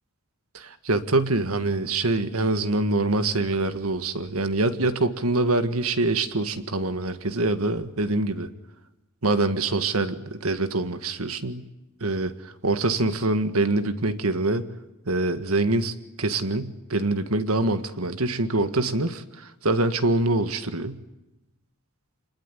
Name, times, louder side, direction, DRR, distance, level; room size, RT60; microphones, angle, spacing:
voice 1, 0.5-8.5 9.2-11.6 12.0-12.3 12.6-14.6 15.0-21.0, right 2 dB, 85° right, 10 dB, 1.8 m, -25 dB
27.0 x 20.5 x 10.0 m, 1.0 s
head